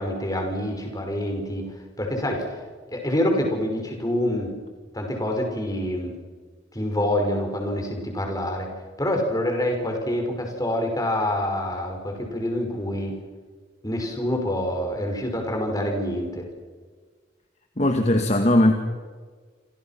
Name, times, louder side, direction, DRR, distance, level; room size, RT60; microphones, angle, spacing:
voice 1, 0.0-1.7 2.0-2.5 2.9-4.5 4.9-6.2 6.7-8.7 9.0-13.1 13.8-16.5, left 1 dB, 20° left, 3 dB, 5.8 m, -26 dB
voice 2, 17.8-18.7, left 1 dB, 35° left, 5 dB, 1.9 m, -19 dB
28.5 x 27.0 x 6.0 m, 1.5 s
head